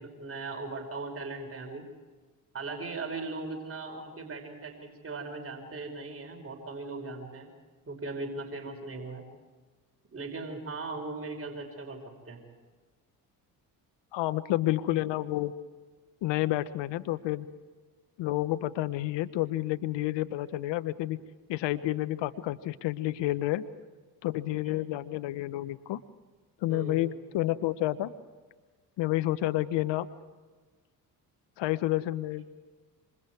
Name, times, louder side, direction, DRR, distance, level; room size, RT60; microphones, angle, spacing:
voice 1, 0.0-1.8 2.5-7.5 7.9-9.3 10.1-12.0 12.3-12.4 26.7-27.0, right 3 dB, 25° right, 2 dB, 5.6 m, -38 dB
voice 2, 14.1-15.5 16.2-17.5 18.2-21.2 21.5-23.6 24.2-26.0 26.6-28.1 29.0-30.1 31.6-32.5, left 15 dB, 60° left, 12 dB, 1.1 m, -30 dB
27.5 x 26.0 x 4.8 m, 1.3 s
hypercardioid pair, 50°, 49 cm